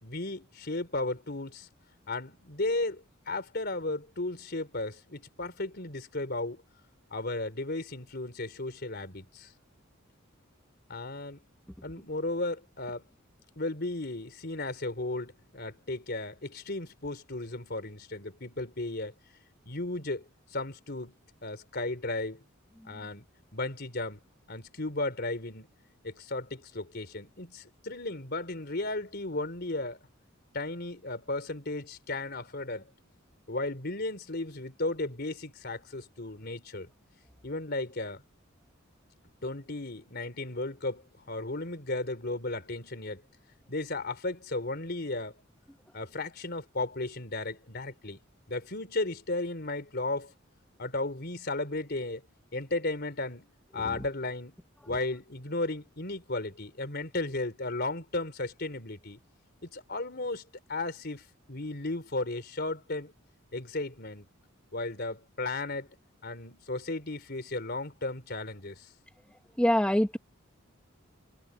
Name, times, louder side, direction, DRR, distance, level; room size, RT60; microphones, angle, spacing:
voice 1, 0.0-1.7 2.1-6.6 7.1-9.5 10.9-11.4 11.8-13.1 13.6-19.1 19.7-20.3 20.5-21.2 21.4-22.4 22.8-23.2 23.5-24.2 24.5-25.7 26.0-30.0 30.5-32.9 33.5-36.9 37.4-38.2 39.4-43.2 43.7-45.4 45.9-48.2 48.5-50.3 50.8-52.3 52.5-53.5 53.7-54.5 54.9-59.2 59.6-63.1 63.5-64.3 64.7-65.9 66.2-68.9, left 2 dB, 50° left, 3.8 m, -35 dB
voice 2, 69.6-70.2, equal, 5° left, 1.5 m, -26 dB
head